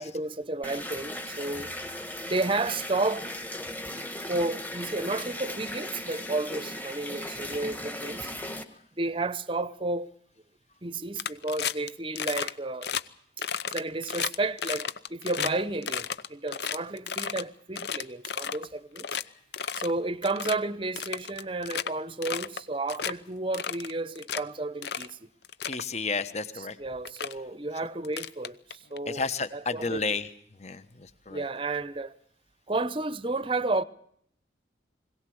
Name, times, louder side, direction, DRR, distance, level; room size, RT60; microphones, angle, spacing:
voice 1, 0.0-1.7 2.2-3.3 4.3-8.3 8.9-10.1 10.8-12.9 13.7-19.1 19.7-25.3 26.6-29.2 29.5-30.2 31.3-32.1 32.7-33.8, right 2 dB, 25° right, 0.8 m, -32 dB
sound 1, 0.6-8.6, left 1 dB, 10° left, 1.6 m, -37 dB
sound 2, 11.2-11.9 12.2-12.5 12.8-13.0 13.4-15.5 15.8-17.4 17.8-18.7 19.0-19.2 19.5-19.9 20.2-20.6 21.0-21.9 22.2-22.6 22.9-23.1 23.5-24.4 24.8-25.1 25.4-25.8 26.6-26.7 27.1-27.3 28.0-29.0, left 7 dB, 60° left, 0.8 m, -33 dB
voice 2, 25.7-26.8 29.1-30.3 30.6-31.5, left 4 dB, 35° left, 1.2 m, -32 dB
22.0 x 17.5 x 7.8 m
head